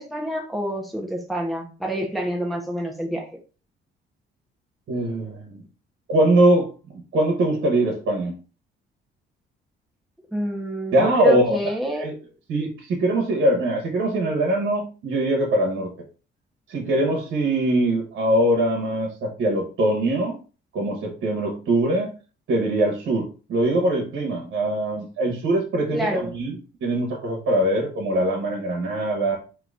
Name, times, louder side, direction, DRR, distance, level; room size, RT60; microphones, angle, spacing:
voice 1, 0.0-3.3 10.3-12.1 25.9-26.3, equal, ahead, 0 dB, 0.9 m, -27 dB
voice 2, 4.9-5.6 6.1-8.3 10.9-11.6 12.0-12.2 12.5-15.9 16.7-20.4 20.7-22.1 22.5-26.5 26.8-29.4, right 1 dB, 70° right, -1 dB, 1.3 m, -22 dB
3.9 x 3.0 x 3.6 m, 0.35 s
cardioid pair, 90°, 20 cm